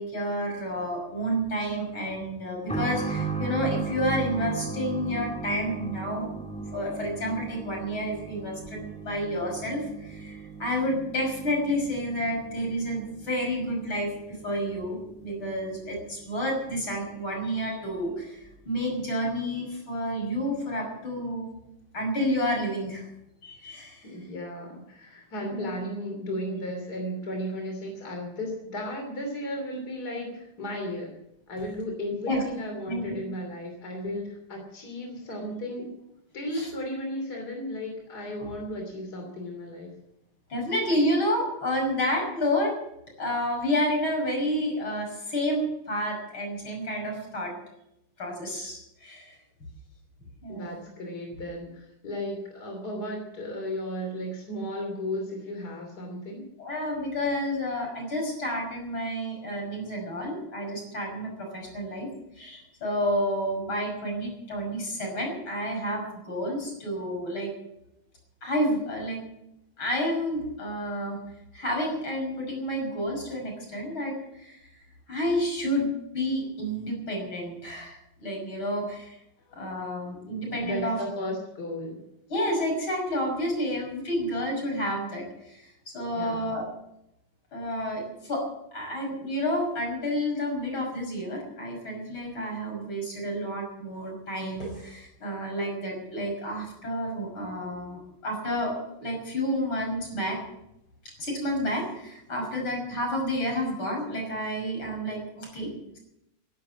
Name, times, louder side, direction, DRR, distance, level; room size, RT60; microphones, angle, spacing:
voice 1, 0.0-6.3 6.7-21.5 21.9-23.1 23.4-24.1 25.5-25.7 32.3-32.4 32.9-33.2 36.5-36.7 38.4-38.5 40.5-42.8 43.2-47.5 48.2-49.3 50.4-50.7 56.6-62.1 62.4-67.5 68.4-69.2 69.8-71.2 71.5-74.8 75.1-79.2 79.5-81.0 82.3-86.6 87.5-88.4 88.7-100.4 101.2-106.0, equal, 85° left, 1 dB, 6.6 m, -30 dB
sound 1, 2.7-17.1 17.4-17.5 18.4-18.6, right 4 dB, 5° left, 1.8 m, -37 dB
voice 2, 24.0-31.1 31.5-36.0 36.3-39.9 50.5-56.4 79.5-79.8 80.2-82.0 86.1-86.5, equal, 50° left, 2 dB, 3.5 m, -35 dB
15.5 x 11.5 x 7.5 m, 0.83 s
omnidirectional pair, 2.2 m